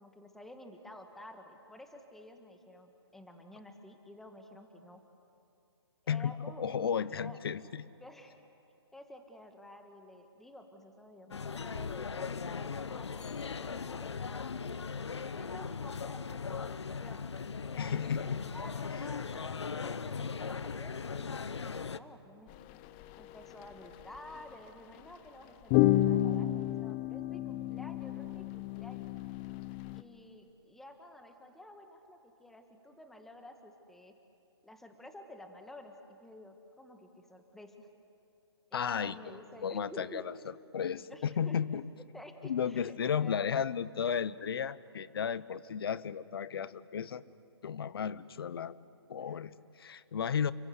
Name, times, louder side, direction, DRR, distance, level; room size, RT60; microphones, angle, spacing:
voice 1, 0.0-5.0 6.0-6.9 7.1-7.4 8.0-8.4 8.9-14.9 15.3-17.2 17.8-22.5 23.2-29.1 29.9-34.1 34.6-37.9 38.7-40.3 41.0-41.6 42.0-43.4 49.2-49.5, left 1 dB, ahead, 5 dB, 1.5 m, -51 dB
voice 2, 6.1-7.9 17.8-18.5 38.7-40.3 40.7-41.9 42.4-47.2 47.6-48.8 49.1-50.5, left 7 dB, 60° left, 17 dB, 1.0 m, -34 dB
sound 1, 11.3-22.0, left 5 dB, 80° left, 0.9 m, -38 dB
sound 2, 22.5-22.6 23.0-23.2 24.0-24.4 25.7-30.0, left 14 dB, 20° left, 0.6 m, -30 dB
30.0 x 23.0 x 8.2 m, 2.6 s
hypercardioid pair, 150°, 14 cm